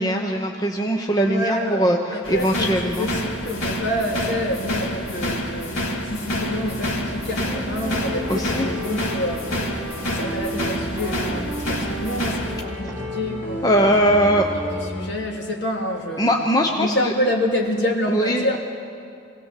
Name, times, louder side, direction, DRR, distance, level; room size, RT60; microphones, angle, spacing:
voice 1, 0.0-3.1 8.3-8.7 13.6-14.5 16.2-17.1 18.1-18.6, equal, 20° left, 2 dB, 0.8 m, -21 dB
voice 2, 1.2-14.5 14.9-16.3 16.8-18.6, left 1 dB, 60° left, 0 dB, 2.8 m, -27 dB
sound 1, 2.2-12.6, equal, 85° left, 2.1 m, -28 dB
sound 2, 6.3-15.1, equal, 10° right, 2.3 m, -32 dB
23.5 x 17.5 x 7.4 m, 2.5 s
head